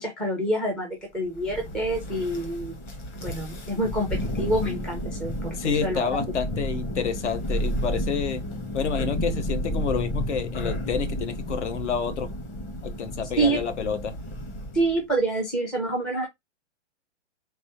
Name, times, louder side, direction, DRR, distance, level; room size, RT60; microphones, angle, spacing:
voice 1, 0.0-2.8 3.2-6.0 13.4-13.6 14.7-16.3, right 2 dB, 5° left, 0.4 m, -27 dB
Thunder, 1.3-15.0, equal, 25° left, 1.0 m, -32 dB
voice 2, 5.6-8.4 8.7-12.3 12.8-14.2, left 6 dB, 70° left, 1.0 m, -29 dB
3.3 x 3.3 x 2.9 m
hypercardioid pair, 140°, 36 cm